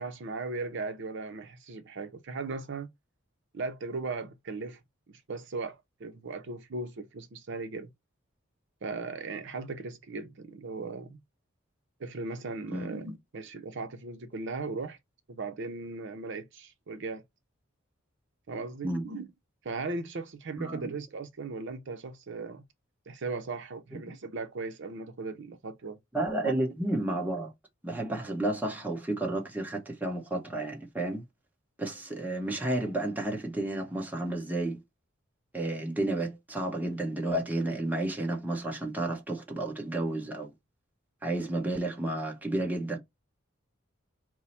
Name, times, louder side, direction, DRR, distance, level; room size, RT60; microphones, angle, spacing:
voice 1, 0.0-2.9 3.5-4.8 5.3-7.9 8.8-11.2 12.0-15.0 15.3-17.2 18.5-19.3 19.6-22.6 23.1-26.0 26.4-26.5, right 3 dB, 60° right, 0.6 m, -37 dB
voice 2, 12.7-13.1 18.8-19.0 20.6-20.9 26.1-27.5 27.8-31.2 31.8-34.8 35.5-40.5 41.2-43.0, right 1 dB, 10° right, 0.9 m, -31 dB
4.5 x 2.0 x 4.2 m
head